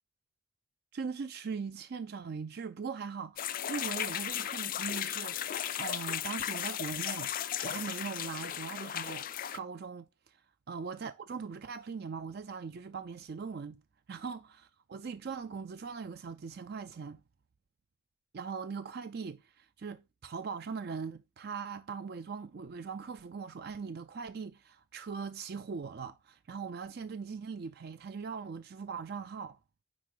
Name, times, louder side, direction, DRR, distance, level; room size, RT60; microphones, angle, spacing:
voice 1, 0.9-7.3 7.6-9.3 9.5-10.4 10.7-13.8 14.1-17.2 18.3-29.6, right 5 dB, 50° right, 0.4 m, -40 dB
sound 1, 3.4-9.6, left 10 dB, 45° left, 0.4 m, -36 dB
9.7 x 3.6 x 3.8 m
head